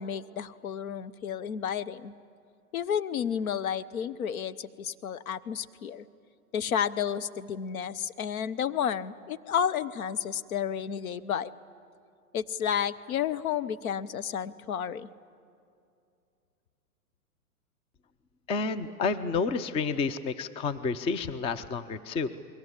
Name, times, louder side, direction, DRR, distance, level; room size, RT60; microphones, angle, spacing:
voice 1, 0.0-2.1 2.7-6.0 6.5-11.5 12.3-15.1, left 8 dB, 65° left, 13 dB, 1.1 m, -31 dB
voice 2, 18.5-22.3, left 4 dB, 15° left, 13 dB, 0.5 m, -30 dB
28.5 x 22.0 x 8.2 m, 2.5 s
hypercardioid pair, 115°, 45 cm